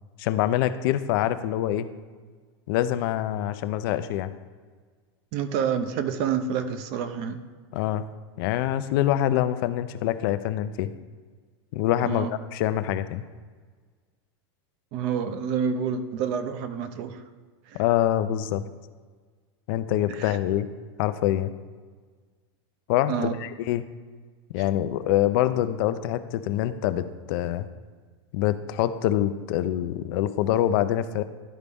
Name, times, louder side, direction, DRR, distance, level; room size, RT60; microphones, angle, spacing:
voice 1, 0.2-1.9 2.7-4.3 7.7-8.0 8.4-10.9 11.7-13.2 17.8-18.6 19.7-20.7 21.0-21.5 22.9-23.8 24.5-27.7 28.3-31.2, left 12 dB, 55° left, 12 dB, 0.4 m, -25 dB
voice 2, 5.3-7.4 12.0-12.3 14.9-17.2 17.7-17.8 20.1-20.4 23.1-23.4, right 7 dB, 45° right, 10 dB, 0.6 m, -28 dB
11.5 x 4.0 x 3.5 m, 1.5 s
supercardioid pair, 145°, 14 cm